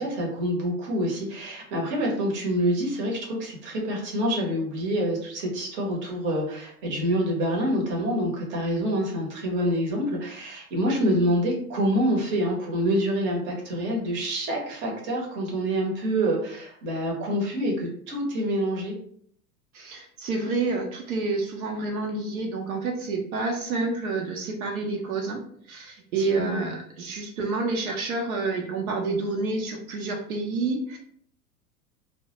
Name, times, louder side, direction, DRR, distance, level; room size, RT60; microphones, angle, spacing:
voice 1, 0.0-19.0 26.2-26.7, equal, 25° right, -2 dB, 0.7 m, -26 dB
voice 2, 19.7-25.4 25.7-31.0, right 3 dB, 65° right, 1 dB, 0.6 m, -29 dB
2.2 x 2.1 x 2.8 m, 0.62 s
figure-of-eight pair, 95°, 47 cm